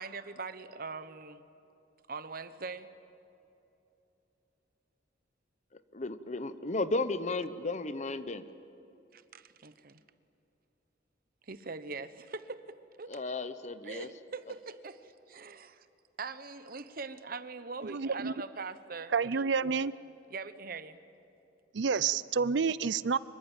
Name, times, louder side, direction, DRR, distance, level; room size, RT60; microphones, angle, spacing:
voice 1, 0.0-1.4 2.1-2.9 9.1-10.0 11.5-13.2 13.8-15.9 16.2-19.4 20.3-21.0, right 4 dB, 55° right, 12 dB, 1.1 m, -42 dB
voice 2, 5.9-8.4 13.1-14.1, left 2 dB, 40° left, 12 dB, 1.0 m, -34 dB
voice 3, 17.9-18.3 19.1-19.9 21.7-23.2, right 5 dB, 75° right, 18 dB, 0.5 m, -29 dB
25.5 x 23.5 x 9.1 m, 2.9 s
head